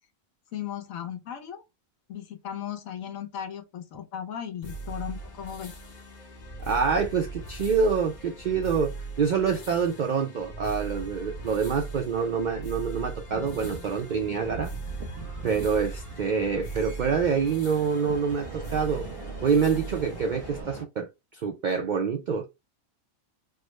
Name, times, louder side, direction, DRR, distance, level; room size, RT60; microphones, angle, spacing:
voice 1, 0.5-1.6 2.1-5.7, left 9 dB, 85° left, 1.2 m, -36 dB
sound 1, 4.6-20.6, right 3 dB, 40° left, 0.8 m, -40 dB
voice 2, 6.6-14.7 15.4-19.1 19.4-22.5, right 6 dB, 75° right, 0.4 m, -26 dB
sound 2, 13.3-20.8, right 4 dB, 45° right, 1.0 m, -42 dB
3.3 x 2.0 x 3.0 m
omnidirectional pair, 1.4 m